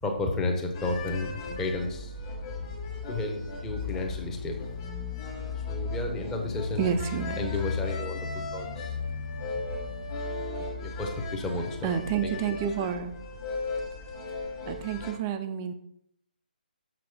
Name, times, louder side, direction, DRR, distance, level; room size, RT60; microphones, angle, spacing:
voice 1, 0.0-2.1 3.1-4.7 5.7-6.8 7.4-9.0 10.5-11.9 12.2-12.4, left 2 dB, 10° left, 2 dB, 0.8 m, -32 dB
sound 1, 0.7-15.1, left 4 dB, 25° left, 1.4 m, -35 dB
voice 2, 6.8-7.5 11.8-13.1 14.7-15.7, right 8 dB, 15° right, 9 dB, 0.4 m, -29 dB
6.5 x 6.0 x 4.9 m, 0.73 s
hypercardioid pair, 165°, 5 cm